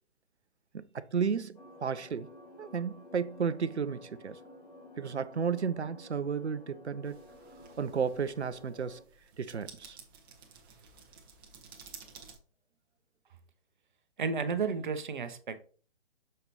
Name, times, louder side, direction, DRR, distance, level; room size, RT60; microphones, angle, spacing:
voice 1, 0.7-4.4 5.0-7.2 7.8-9.0 9.4-10.0, right 6 dB, 75° right, 0.6 m, -33 dB
sound 1, 1.5-9.0, left 1 dB, 35° left, 1.5 m, -53 dB
bike-chain, 7.0-12.4, right 6 dB, 20° right, 1.0 m, -53 dB
voice 2, 14.2-15.6, right 5 dB, 45° right, 0.9 m, -32 dB
6.6 x 5.2 x 2.9 m
figure-of-eight pair, 135°, 34 cm